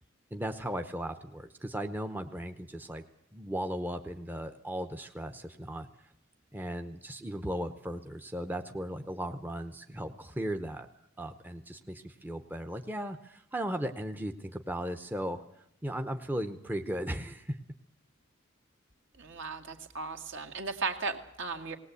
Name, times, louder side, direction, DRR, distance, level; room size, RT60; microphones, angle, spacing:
voice 1, 0.3-3.0 3.3-5.9 6.5-10.9 11.2-15.4 15.8-17.6, right 1 dB, 10° right, 6 dB, 0.8 m, -36 dB
voice 2, 19.2-21.8, right 4 dB, 65° right, 4 dB, 2.0 m, -36 dB
19.5 x 19.0 x 8.3 m, 0.74 s
head